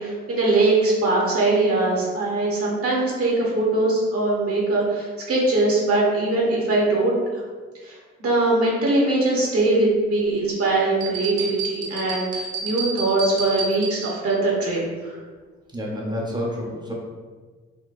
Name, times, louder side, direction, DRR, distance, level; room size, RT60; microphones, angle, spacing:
voice 1, 0.0-7.4 7.8-15.1, right 2 dB, 50° right, -4 dB, 0.9 m, -21 dB
sound 1, 11.0-14.4, right 4 dB, 75° right, 0.6 m, -30 dB
voice 2, 15.7-16.9, equal, 15° right, -3 dB, 0.7 m, -29 dB
3.7 x 2.1 x 2.5 m, 1.4 s
cardioid pair, 90°, 30 cm